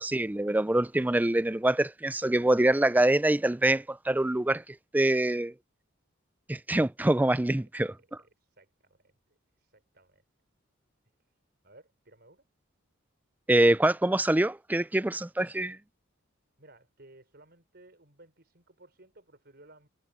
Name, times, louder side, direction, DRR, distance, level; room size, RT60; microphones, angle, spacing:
voice 1, 0.0-4.6 4.9-5.5 6.5-7.9 13.5-15.8, right 1 dB, 10° right, 0.3 m, -25 dB
voice 2, 7.8-10.2 11.6-12.4 16.6-19.9, right 2 dB, 50° right, 4.8 m, -58 dB
head